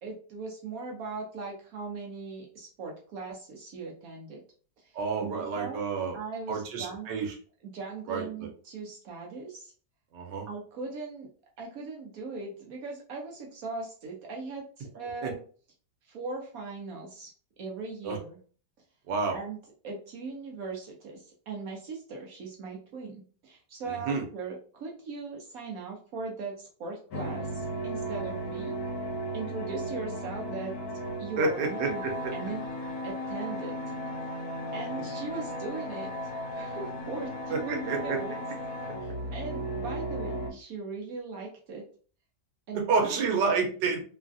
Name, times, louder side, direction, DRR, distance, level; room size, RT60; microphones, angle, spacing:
voice 1, 0.0-4.4 4.8-4.9 5.2-5.8 6.1-7.1 7.6-9.7 10.5-11.3 11.6-15.4 16.1-17.3 17.6-18.4 19.3-19.6 19.8-28.8 29.3-30.8 31.2-32.0 32.3-32.6 33.0-33.7 34.7-36.1 36.5-38.3 39.0-41.8 42.7-43.2, right 4 dB, 65° right, -1 dB, 0.9 m, -39 dB
voice 2, 4.9-6.2 6.5-7.4 8.1-8.5 10.1-10.5 15.2-15.3 18.0-18.2 19.1-19.4 23.9-24.2 31.4-32.1 37.5-38.2 42.7-44.0, right 4 dB, 85° right, 2 dB, 1.3 m, -29 dB
sound 1, 27.1-40.5, equal, 65° left, 1.2 m, -35 dB
3.1 x 2.3 x 2.5 m, 0.42 s
omnidirectional pair, 1.9 m